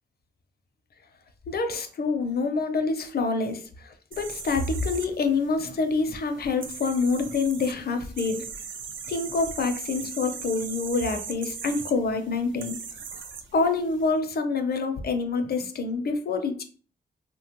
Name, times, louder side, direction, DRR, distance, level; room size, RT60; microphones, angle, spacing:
voice 1, 1.5-8.4 9.1-12.8 13.1-13.2 13.5-16.6, left 4 dB, 55° left, 7 dB, 0.5 m, -27 dB
sound 1, 4.1-14.1, right 6 dB, 80° right, 0.4 m, -40 dB
3.1 x 2.2 x 2.8 m, 0.42 s
wide cardioid pair, 85°, 19 cm